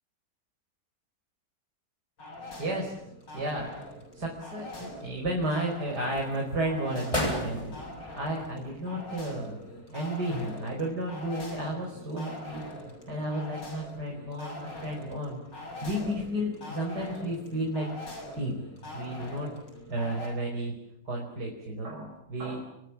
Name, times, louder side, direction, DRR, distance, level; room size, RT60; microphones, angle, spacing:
sound 1, 2.2-20.3, left 1 dB, 85° left, 8.3 m, -43 dB
voice 1, 2.6-3.0 3.3-3.8 4.1-9.6 9.9-12.6 13.1-15.4 15.8-17.9 18.3-18.6 18.9-19.5 19.9-20.7 21.1-22.6, right 1 dB, 65° right, 0 dB, 5.4 m, -32 dB
sound 2, 3.4-4.1 4.5-5.4 6.0-6.3 6.8-6.9 7.1-9.0 9.3-9.4, equal, 15° left, 8.1 m, -34 dB
29.5 x 22.5 x 7.3 m, 0.79 s
omnidirectional pair, 1.9 m